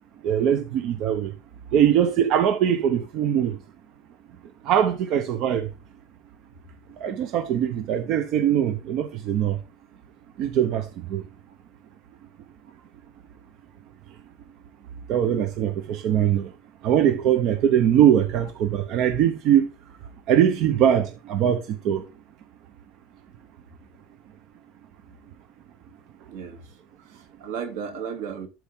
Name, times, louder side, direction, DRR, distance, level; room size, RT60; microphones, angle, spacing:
voice 1, 0.2-1.3 1.7-3.6 4.7-5.7 7.0-9.6 10.4-11.2 15.1-16.5 16.8-19.7 20.3-22.0, right 9 dB, 40° right, 0.7 m, -21 dB
voice 2, 26.3-28.5, right 7 dB, 75° right, 2.7 m, -35 dB
12.0 x 4.6 x 3.6 m
cardioid pair, 180°, 0 cm